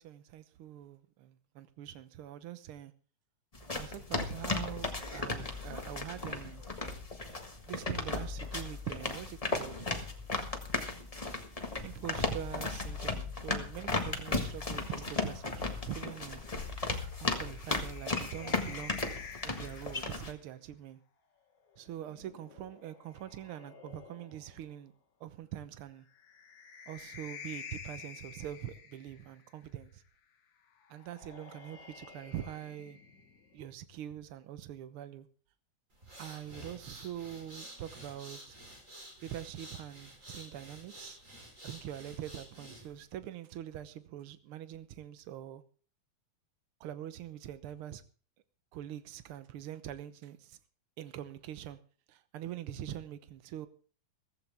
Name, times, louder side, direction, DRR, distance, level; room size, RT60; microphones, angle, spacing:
voice 1, 0.0-2.9 3.7-6.6 7.7-9.9 11.8-16.4 17.2-19.0 19.4-21.0 21.8-24.9 25.2-26.1 26.9-30.0 30.9-33.0 33.5-35.3 36.2-38.5 39.2-41.2 41.6-45.6 46.8-48.0 48.7-50.6 51.0-51.8 52.1-53.7, right 11 dB, 65° right, 1.4 m, -44 dB
sound 1, 3.5-20.3, left 3 dB, 35° left, 0.5 m, -36 dB
sound 2, 14.8-20.3 21.7-24.7 26.0-29.5 30.8-33.7, left 6 dB, 70° left, 3.0 m, -51 dB
sound 3, 35.9-43.1, right 1 dB, 25° right, 4.9 m, -51 dB
15.0 x 15.0 x 3.5 m
omnidirectional pair, 3.5 m